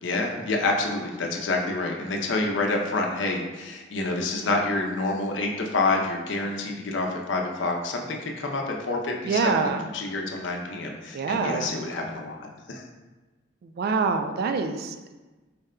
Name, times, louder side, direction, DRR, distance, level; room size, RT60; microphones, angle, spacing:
voice 1, 0.0-12.8, left 2 dB, 75° left, 1 dB, 0.6 m, -28 dB
voice 2, 9.2-9.8 11.1-11.7 13.6-15.1, right 4 dB, 55° right, 7 dB, 0.3 m, -26 dB
4.1 x 2.2 x 3.6 m, 1.2 s
head